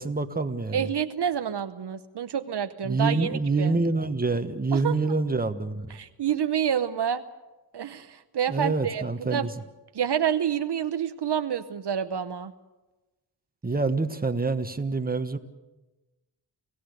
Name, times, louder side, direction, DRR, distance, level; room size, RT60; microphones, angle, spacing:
voice 1, 0.0-0.9 2.8-6.0 8.5-9.5 13.6-15.4, right 3 dB, 20° right, 1.4 m, -26 dB
voice 2, 0.7-3.7 4.7-5.0 5.9-7.2 7.7-9.5 9.9-12.5, right 8 dB, 70° right, 0.9 m, -28 dB
29.0 x 16.0 x 6.8 m
cardioid pair, 60°, 42 cm